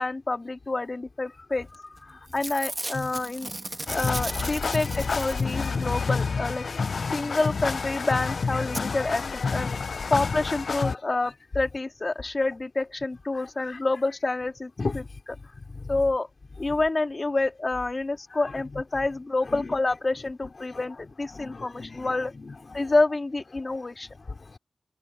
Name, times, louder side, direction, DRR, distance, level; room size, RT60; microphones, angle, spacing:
voice 1, 0.0-3.5 3.9-6.7 7.1-15.0 15.9-16.3 16.6-22.3 22.7-24.1, left 2 dB, 50° left, 3.0 m, -28 dB
Packing tape duct tape / Tearing, 1.7-2.0 2.3-5.9 7.8-8.1 8.7-8.8 9.5-9.6 9.8-9.9, right 2 dB, 35° right, 2.1 m, -36 dB
sound 1, 3.9-11.0, left 5 dB, 90° left, 0.4 m, -29 dB
voice 2, 6.8-7.1 8.9-9.1 9.5-10.1 10.8-11.0 11.2-11.3 13.3-13.8 14.8-15.1 15.7-16.0 16.7-16.8 18.3-18.8 19.4-19.7 20.6-21.0 21.3-22.9 23.6-23.8 24.2-24.6, left 3 dB, 65° left, 3.9 m, -38 dB
cardioid pair, 50°, 0 cm